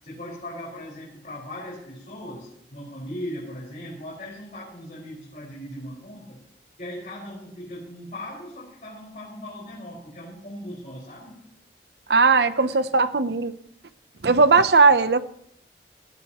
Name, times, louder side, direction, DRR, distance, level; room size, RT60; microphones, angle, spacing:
voice 1, 0.0-6.4 6.8-11.4 12.5-12.8, left 1 dB, 45° left, -6 dB, 5.2 m, -38 dB
voice 2, 12.1-13.5 14.2-15.2, right 4 dB, 75° right, 12 dB, 0.8 m, -18 dB
19.0 x 17.5 x 3.1 m, 0.70 s
head